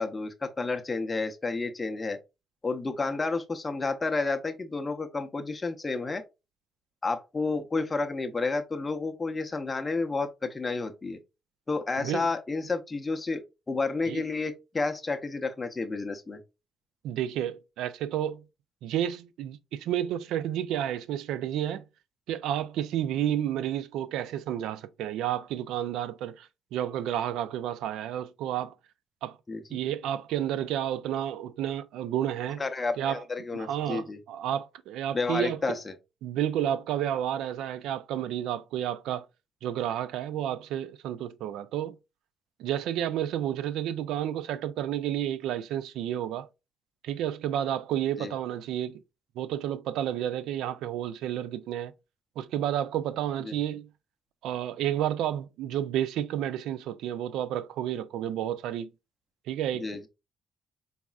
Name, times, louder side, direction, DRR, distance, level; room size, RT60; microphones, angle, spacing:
voice 1, 0.0-2.2 2.6-6.2 7.0-11.2 11.7-16.4 29.5-29.8 32.6-34.2 35.1-35.9 48.2-48.3 53.4-53.6 59.7-60.1, left 3 dB, 25° left, 0.6 m, -31 dB
voice 2, 12.0-12.3 14.1-14.2 17.0-18.4 18.8-21.8 22.3-28.7 29.2-29.4 29.7-32.6 33.0-33.2 33.5-35.8 36.2-39.3 39.6-42.0 42.6-46.5 47.0-49.0 49.4-51.9 52.4-53.9 54.4-58.9 59.5-59.9, right 11 dB, 90° right, 0.3 m, -31 dB
4.1 x 3.4 x 2.3 m
cardioid pair, 90°, 0 cm